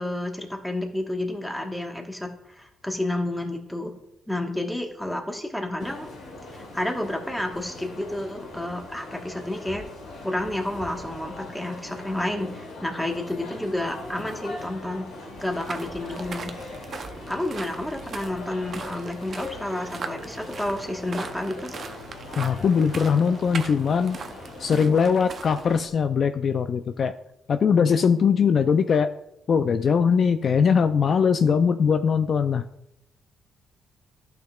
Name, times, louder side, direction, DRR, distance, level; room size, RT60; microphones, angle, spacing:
voice 1, 0.0-3.9 4.3-6.1 6.5-9.8 10.2-15.1 15.4-16.5 17.3-21.7, left 1 dB, 5° left, 2 dB, 1.3 m, -30 dB
sound 1, 5.8-24.8, left 2 dB, 75° left, 2.5 m, -41 dB
sound 2, 15.4-25.9, right 5 dB, 45° right, 0.6 m, -40 dB
voice 2, 22.4-24.2 24.6-27.1 27.5-29.1 29.5-32.6, left 6 dB, 50° left, 9 dB, 0.3 m, -21 dB
11.5 x 5.9 x 2.3 m, 0.82 s
cardioid pair, 90°, 0 cm